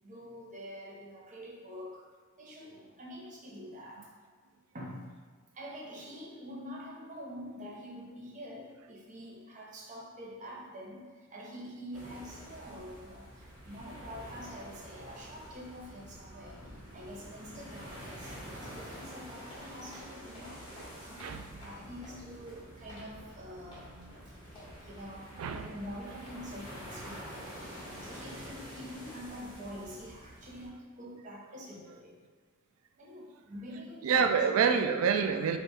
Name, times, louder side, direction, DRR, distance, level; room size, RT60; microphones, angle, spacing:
voice 1, 0.0-2.1 2.4-4.1 4.7-5.2 5.5-20.7 20.9-24.4 24.6-27.5 28.0-32.2 33.0-34.4, equal, 35° right, -3 dB, 0.7 m, -46 dB
sound 1, 11.9-30.7, equal, 20° right, 1.2 m, -48 dB
sound 2, 19.5-27.2, equal, 25° left, 1.2 m, -53 dB
voice 2, 34.0-35.6, right 6 dB, 75° right, 8 dB, 0.3 m, -27 dB
3.4 x 2.3 x 4.1 m, 1.5 s
head